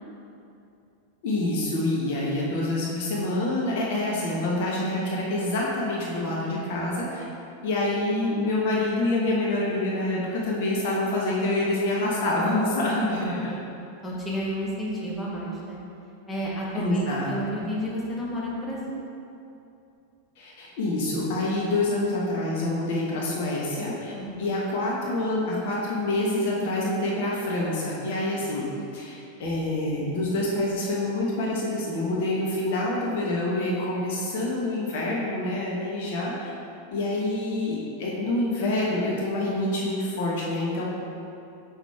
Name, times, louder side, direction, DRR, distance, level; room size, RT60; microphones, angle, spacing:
voice 1, 1.2-7.2 7.6-13.5 16.7-17.4 17.6-17.7 20.4-24.1 24.4-28.6 28.9-36.5 36.9-40.8, left 2 dB, 50° left, -4 dB, 1.2 m, -27 dB
voice 2, 13.0-13.6 14.0-15.8 16.3-18.8 24.1-24.5, equal, 15° left, -5 dB, 1.3 m, -31 dB
6.3 x 6.1 x 3.5 m, 2.7 s
figure-of-eight pair, 90°, 0 cm